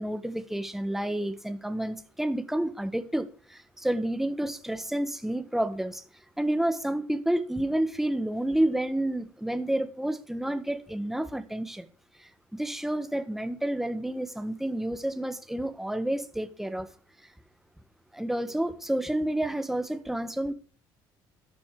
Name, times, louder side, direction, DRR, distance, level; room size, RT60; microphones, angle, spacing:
voice 1, 0.0-6.0 6.4-11.9 12.2-16.9 18.1-20.5, right 1 dB, 5° right, 1.6 m, -30 dB
12.0 x 11.5 x 6.0 m
cardioid pair, 95°, 9 cm